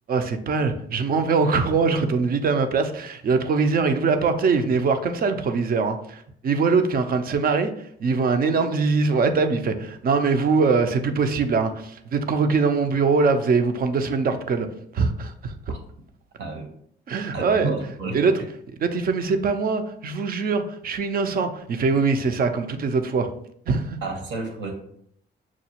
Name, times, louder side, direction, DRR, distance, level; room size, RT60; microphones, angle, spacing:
voice 1, 0.1-14.7 14.9-15.7 17.1-17.7 18.1-18.3 18.8-23.3 23.7-24.0, right 4 dB, 50° right, 8 dB, 0.5 m, -22 dB
voice 2, 17.3-18.2 24.0-24.7, right 3 dB, 70° right, 3 dB, 1.0 m, -30 dB
6.0 x 2.3 x 2.8 m, 0.68 s
cardioid pair, 90°, 20 cm